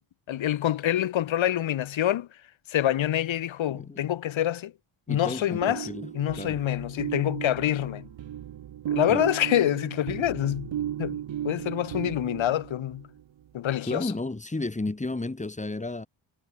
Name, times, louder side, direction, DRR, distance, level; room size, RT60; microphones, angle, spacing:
voice 1, 0.3-2.3 2.7-4.7 5.1-5.9 6.1-8.1 8.9-10.7 11.0-11.2 11.4-13.0 13.5-14.1, left 12 dB, 75° left, 2.6 m, -26 dB
voice 2, 3.7-4.1 5.1-6.6 9.1-9.3 13.9-16.1, left 2 dB, 15° left, 3.9 m, -33 dB
sound 1, 5.2-13.2, right 11 dB, 70° right, 2.9 m, -35 dB
cardioid pair, 95°, 47 cm